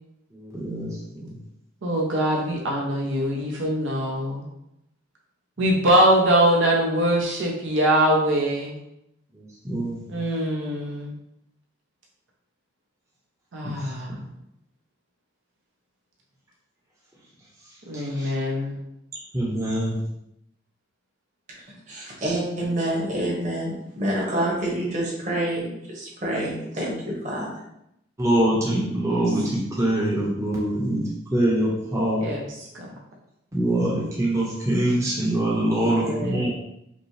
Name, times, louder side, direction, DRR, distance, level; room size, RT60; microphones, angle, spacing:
voice 1, 0.4-1.3 9.6-10.0 13.6-13.7 18.2-18.3 19.3-19.9 28.2-31.0 31.3-32.2 33.5-36.5, right 1 dB, 15° right, -6 dB, 0.7 m, -24 dB
voice 2, 1.8-4.5 5.6-8.8 10.1-11.1 13.5-14.2 17.9-18.8 29.1-29.3 32.2-32.9 36.0-36.5, right 1 dB, 70° right, -1 dB, 0.6 m, -23 dB
voice 3, 21.9-27.5, right 1 dB, 35° right, -4 dB, 1.1 m, -27 dB
5.2 x 2.1 x 3.2 m, 0.82 s
head